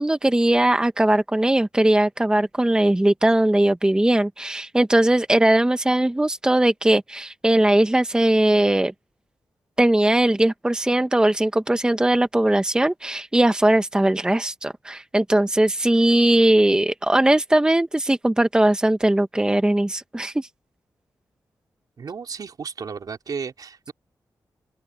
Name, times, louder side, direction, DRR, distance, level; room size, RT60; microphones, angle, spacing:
voice 1, 0.0-8.9 9.8-20.5, right 1 dB, 10° right, 1.0 m, -19 dB
voice 2, 22.0-23.9, right 6 dB, 65° right, 4.1 m, -33 dB
open air
wide cardioid pair, 105°, 7 cm